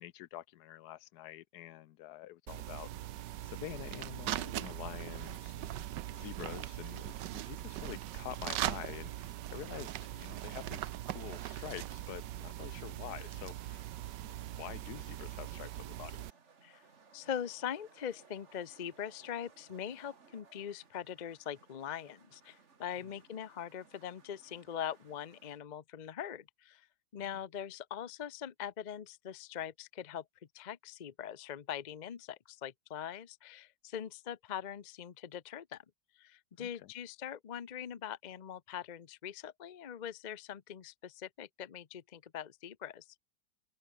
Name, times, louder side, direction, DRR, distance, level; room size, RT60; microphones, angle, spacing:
voice 1, 0.0-2.9 3.4-5.8 6.1-13.9 14.2-16.3 23.0-23.1 27.3-27.4 36.6-36.9, left 14 dB, 75° left, 1.0 m, -47 dB
sound 1, 2.5-16.3, right 13 dB, 75° right, 1.4 m, -41 dB
sound 2, 14.5-25.6, right 5 dB, 40° right, 2.0 m, -63 dB
voice 2, 17.1-26.9 27.1-30.3 30.5-35.8 36.1-43.1, left 9 dB, 50° left, 0.5 m, -42 dB
open air
omnidirectional pair, 1.9 m